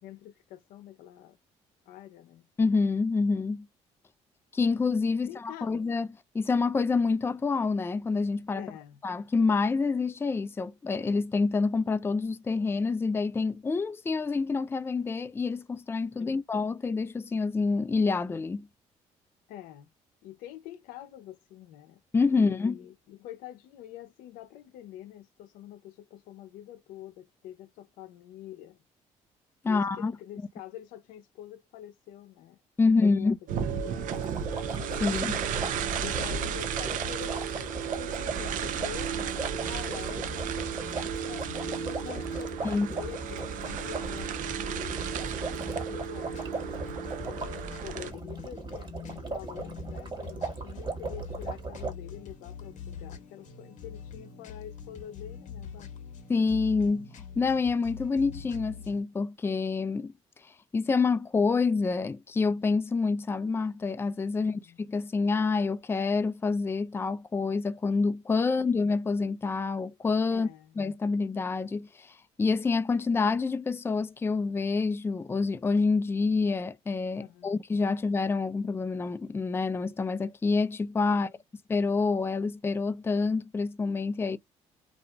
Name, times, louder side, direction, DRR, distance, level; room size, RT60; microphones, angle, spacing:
voice 1, 0.0-1.4 1.9-2.5 5.1-5.8 8.5-9.0 16.2-16.4 19.5-19.9 20.2-22.0 22.3-28.8 29.6-33.3 33.7-34.5 35.8-40.6 41.2-46.4 47.2-55.9 64.4-64.8 70.3-70.8 77.1-77.6 81.1-81.4, left 11 dB, 85° left, 0.6 m, -46 dB
voice 2, 2.6-3.7 4.5-6.1 6.3-8.6 9.0-18.7 22.1-22.8 29.6-30.1 32.8-33.4 35.0-35.4 42.6-42.9 56.3-57.1 57.4-60.1 60.7-64.6 64.9-70.5 70.8-81.3 81.7-84.4, left 4 dB, 15° left, 0.4 m, -27 dB
sound 1, 33.5-48.1, right 7 dB, 70° right, 0.5 m, -34 dB
sound 2, 34.1-51.9, right 3 dB, 35° right, 1.4 m, -38 dB
sound 3, 39.6-59.0, left 7 dB, 60° left, 0.9 m, -45 dB
2.7 x 2.5 x 2.2 m
supercardioid pair, 70°, 14 cm